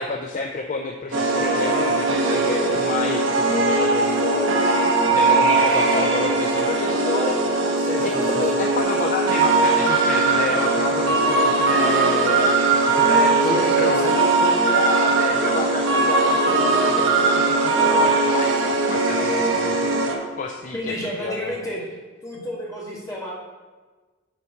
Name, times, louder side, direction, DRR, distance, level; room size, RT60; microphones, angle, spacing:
voice 1, 0.0-4.7 5.1-7.7 8.0-21.5, left 3 dB, 35° left, 3 dB, 0.4 m, -29 dB
sound 1, 1.1-20.2, right 3 dB, 70° right, 1.0 m, -20 dB
voice 2, 5.3-6.1 7.7-8.6 13.4-14.1 20.7-21.8 22.2-23.3, equal, 15° left, -6 dB, 2.0 m, -30 dB
7.7 x 4.2 x 5.7 m, 1.3 s
head